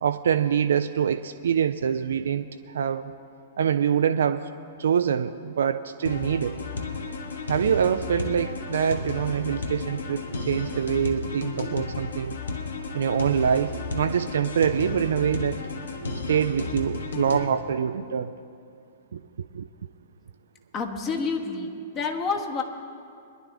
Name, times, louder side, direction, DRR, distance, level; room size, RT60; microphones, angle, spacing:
voice 1, 0.0-3.1 3.6-4.5 4.8-6.6 7.5-12.4 12.9-15.6 16.3-18.3 19.1-19.7, right 8 dB, 60° right, 10 dB, 0.4 m, -25 dB
sound 1, 6.1-17.5, left 3 dB, 65° left, 1.2 m, -33 dB
voice 2, 20.7-22.6, left 4 dB, 25° left, 3 dB, 1.4 m, -29 dB
22.0 x 11.0 x 3.4 m, 2.4 s
figure-of-eight pair, 105°, 0 cm